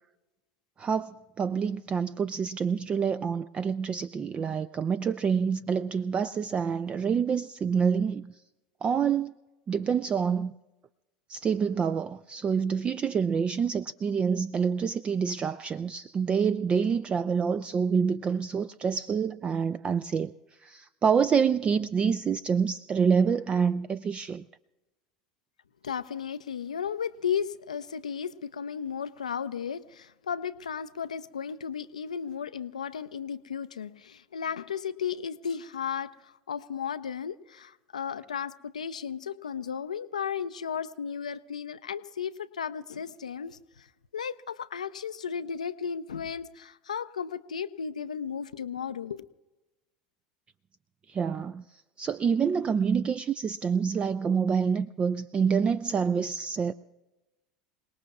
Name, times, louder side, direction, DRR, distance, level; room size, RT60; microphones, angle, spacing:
voice 1, 0.8-8.4 8.8-9.3 9.7-10.5 11.3-20.3 20.6-24.4 51.1-56.7, right 6 dB, 30° right, 0.4 m, -27 dB
voice 2, 25.8-43.9 44.1-49.2, left 7 dB, 85° left, 0.4 m, -34 dB
28.0 x 19.0 x 2.4 m
hypercardioid pair, 80°, 4 cm